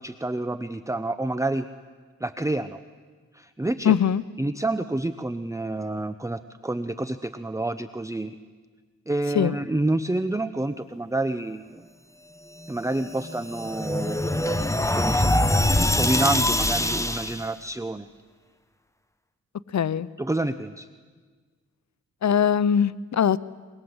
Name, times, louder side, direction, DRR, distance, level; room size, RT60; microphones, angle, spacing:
voice 1, 0.0-1.6 2.2-2.8 3.3-4.0 4.4-8.4 9.1-11.8 12.7-14.5 14.9-15.6 16.0-18.1 20.2-20.9, right 2 dB, 10° right, 11 dB, 0.8 m, -28 dB
voice 2, 3.8-4.2 9.3-9.6 19.7-20.1 22.2-23.4, left 8 dB, 65° left, 17 dB, 0.8 m, -21 dB
sound 1, 13.0-17.5, left 1 dB, 10° left, 1.4 m, -23 dB
24.0 x 22.5 x 8.0 m, 1.5 s
cardioid pair, 60°, 30 cm